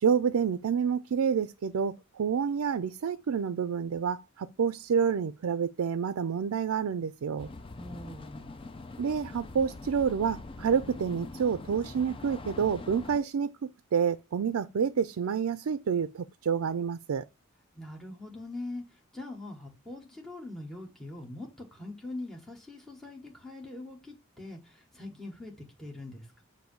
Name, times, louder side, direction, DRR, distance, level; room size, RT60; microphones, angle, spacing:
voice 1, 0.0-7.5 9.0-17.3, right 7 dB, 85° right, 0.4 m, -28 dB
sound 1, 7.4-13.2, left 3 dB, 25° left, 0.4 m, -43 dB
voice 2, 7.7-8.5 17.7-26.4, left 2 dB, ahead, 1.1 m, -42 dB
7.8 x 2.6 x 5.1 m
head